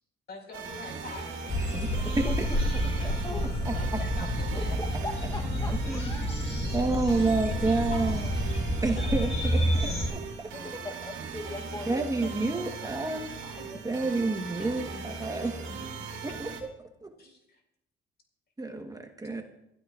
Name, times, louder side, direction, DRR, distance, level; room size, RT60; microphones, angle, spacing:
voice 1, 0.3-1.6 2.9-4.8 5.5-6.1 6.5-6.6 7.4-8.4 8.8-9.2 10.2-10.3 11.5-11.9 13.6-13.7 14.0-14.3 14.6-15.0 15.4-15.9 17.2-17.6, left 3 dB, 55° left, 2 dB, 4.9 m, -46 dB
sound 1, 0.5-16.6, right 5 dB, 90° right, 1.8 m, -40 dB
voice 2, 0.9-1.5 2.0-3.5 4.5-6.3 10.5-13.8, left 1 dB, 20° left, 4 dB, 1.0 m, -41 dB
sound 2, 1.5-10.1, equal, 35° left, 5.0 m, -29 dB
voice 3, 3.6-4.0 5.8-6.0 6.7-8.3 8.8-9.9 10.4-10.5 11.9-13.3 13.8-15.5 16.4-16.5 18.6-19.4, right 3 dB, 20° right, 4 dB, 1.2 m, -29 dB
23.5 x 12.5 x 2.4 m, 0.82 s
cardioid pair, 90°, 20 cm